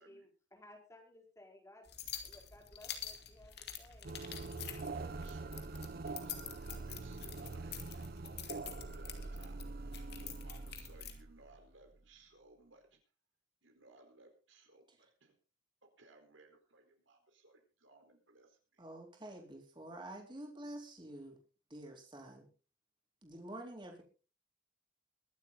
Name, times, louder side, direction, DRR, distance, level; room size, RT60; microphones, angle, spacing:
voice 1, 0.0-1.9 2.2-4.1 4.8-5.1 5.4-5.5, left 1 dB, 15° left, 1 dB, 4.5 m, -59 dB
sound 1, 1.9-11.2, left 9 dB, 55° left, 2.5 m, -48 dB
sound 2, 4.0-12.0, right 3 dB, 50° right, 0.7 m, -44 dB
voice 2, 4.7-13.0 13.6-15.3 16.0-18.8, right 2 dB, 75° right, 4 dB, 4.3 m, -62 dB
voice 3, 18.8-21.4 21.7-22.5 23.2-24.0, right 1 dB, 25° right, 1 dB, 4.0 m, -48 dB
23.0 x 8.2 x 4.0 m, 0.35 s
head